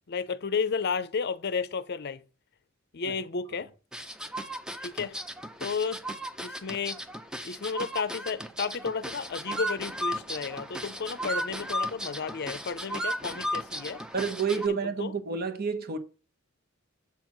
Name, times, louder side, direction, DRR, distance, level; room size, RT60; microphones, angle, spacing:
voice 1, 0.1-2.2 2.9-3.7 4.8-5.2 5.6-6.0 6.4-7.0 7.4-14.0 14.7-15.1, left 5 dB, 50° left, 0.5 m, -32 dB
sound 1, 3.9-14.7, equal, 5° right, 0.5 m, -35 dB
voice 2, 14.1-16.0, right 5 dB, 45° right, 1.1 m, -29 dB
7.3 x 4.5 x 5.9 m
head